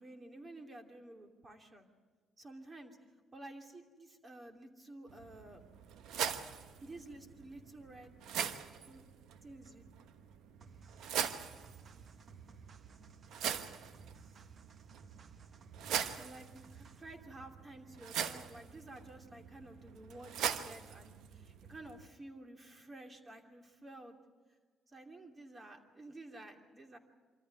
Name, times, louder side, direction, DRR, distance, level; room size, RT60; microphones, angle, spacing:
voice 1, 0.0-1.9 2.4-3.0 3.3-5.6 6.8-8.1 8.9-9.0 9.4-9.8 16.2-24.2 24.9-27.0, right 2 dB, 30° right, 4 dB, 2.8 m, -52 dB
sound 1, 5.1-22.1, right 8 dB, 85° right, 1.1 m, -42 dB
sound 2, 10.6-17.2, right 5 dB, 50° right, 1.0 m, -58 dB
25.0 x 14.0 x 9.6 m, 1.4 s
cardioid pair, 90°, 0 cm